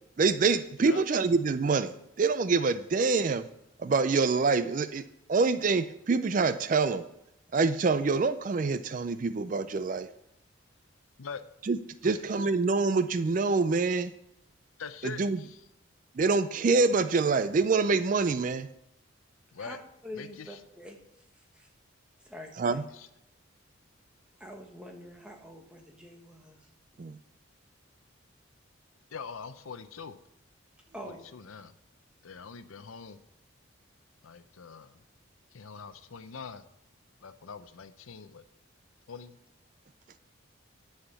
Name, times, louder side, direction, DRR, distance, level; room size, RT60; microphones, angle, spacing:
voice 1, 0.2-1.9 2.2-3.4 3.8-5.0 5.3-7.0 7.5-10.1 11.6-11.8 12.0-14.1 15.0-15.4 16.2-18.7 22.6-22.8 27.0-27.2, right 4 dB, 40° right, 12 dB, 0.4 m, -26 dB
voice 2, 14.8-15.6 19.5-19.8 20.1-20.6 22.9-23.1 29.1-30.2 31.0-31.7 32.2-33.2 34.2-35.0 35.5-36.6 37.2-38.4 39.1-39.3, left 5 dB, 85° left, 12 dB, 0.6 m, -43 dB
voice 3, 20.0-21.0 21.3-21.7 22.2-22.8 24.4-26.7 30.9-31.2, equal, 5° right, 2 dB, 1.2 m, -45 dB
9.8 x 5.7 x 6.9 m, 0.82 s
head